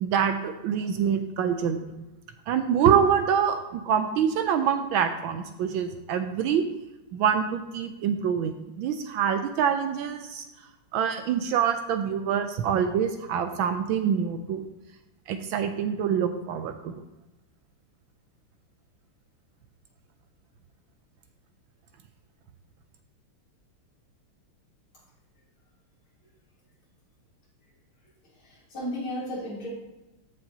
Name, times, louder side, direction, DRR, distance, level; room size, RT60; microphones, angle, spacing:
voice 1, 0.0-1.8 2.5-6.6 7.1-10.5 10.9-14.6 15.3-16.9, right 8 dB, 75° right, 8 dB, 1.2 m, -25 dB
voice 2, 28.3-29.7, left 1 dB, 70° left, -7 dB, 4.0 m, -34 dB
14.0 x 5.3 x 2.8 m, 1.0 s
omnidirectional pair, 2.4 m